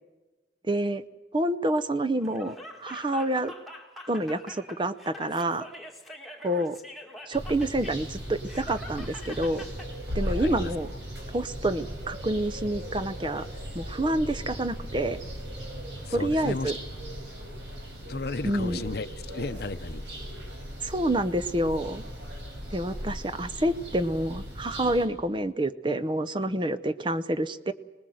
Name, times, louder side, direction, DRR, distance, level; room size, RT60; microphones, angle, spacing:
voice 1, 0.7-1.0 1.3-3.5 4.1-5.7 6.4-6.8 7.3-9.6 10.1-10.9 11.3-13.5 13.7-15.2 16.1-16.8 18.4-18.8 20.8-22.0 22.7-27.7, right 1 dB, 25° right, 12 dB, 0.7 m, -28 dB
Laughter, 2.2-9.9, left 1 dB, ahead, 2.0 m, -44 dB
sound 1, 7.3-25.0, equal, 75° right, 6.3 m, -38 dB
voice 2, 10.2-10.7 16.0-16.7 18.1-20.0, left 3 dB, 55° left, 13 dB, 0.7 m, -34 dB
25.5 x 19.5 x 7.8 m, 1.2 s
head